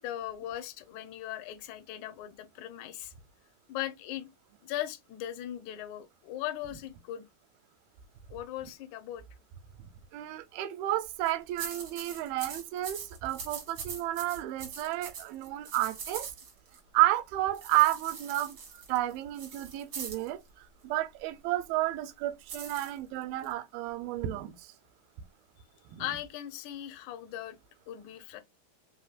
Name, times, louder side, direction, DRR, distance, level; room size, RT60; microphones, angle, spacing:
voice 1, 0.0-3.1 3.7-4.3 4.6-7.2 8.3-9.2 26.0-27.6 27.9-28.4, left 12 dB, 75° left, 1.9 m, -39 dB
voice 2, 10.1-16.3 16.9-24.7 25.9-26.1, right 15 dB, 90° right, 2.5 m, -31 dB
sound 1, 11.1-11.3 11.6-16.8 17.5-20.3 22.5-23.5, right 6 dB, 60° right, 1.3 m, -42 dB
4.9 x 3.8 x 2.4 m
omnidirectional pair, 4.3 m